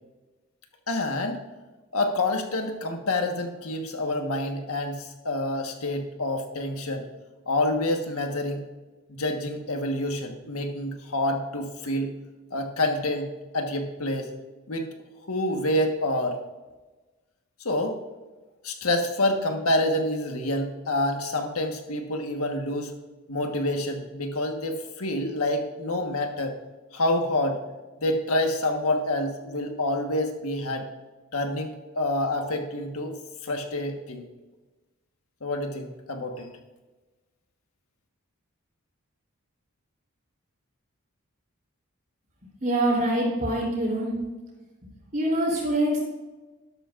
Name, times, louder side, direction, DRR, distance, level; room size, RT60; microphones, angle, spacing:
voice 1, 0.9-1.4 1.9-7.1 7.5-8.6 9.1-12.1 12.5-14.3 14.7-14.9 15.3-16.4 17.6-18.0 18.6-22.9 23.3-26.5 26.9-27.6 28.0-30.9 31.3-33.1 33.4-34.2 35.4-36.5, left 1 dB, 90° left, 4 dB, 1.5 m, -27 dB
voice 2, 42.6-44.1 45.1-46.0, right 1 dB, 40° right, -2 dB, 3.3 m, -24 dB
12.5 x 12.0 x 2.6 m, 1.2 s
head